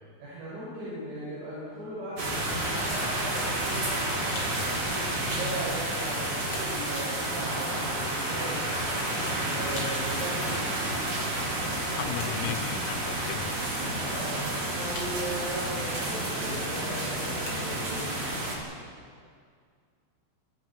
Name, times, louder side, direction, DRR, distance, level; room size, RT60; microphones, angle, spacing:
voice 1, 0.2-8.7 9.4-10.6 13.9-18.1, right 1 dB, 85° right, -9 dB, 9.1 m, -38 dB
sound 1, 2.2-18.6, right 1 dB, 40° right, 5.7 m, -30 dB
sound 2, 4.4-4.6 5.3-6.1 6.5-6.8 8.9-9.4 9.8-10.1 11.5-12.6 14.0-14.5 15.0-15.5 16.9-17.9, left 3 dB, 65° left, 5.4 m, -44 dB
voice 2, 12.0-13.6, left 10 dB, 85° left, 9 dB, 3.6 m, -35 dB
29.0 x 23.0 x 4.5 m, 2.1 s
omnidirectional pair, 5.6 m